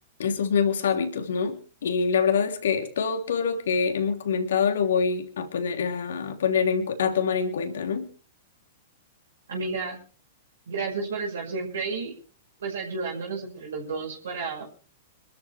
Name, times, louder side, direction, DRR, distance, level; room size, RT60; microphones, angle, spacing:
voice 1, 0.2-8.1, left 6 dB, 65° left, 3.2 m, -25 dB
voice 2, 9.5-10.0 10.7-12.1 12.6-14.7, right 4 dB, 65° right, 5.9 m, -31 dB
26.5 x 13.5 x 3.4 m
figure-of-eight pair, 105°, 0 cm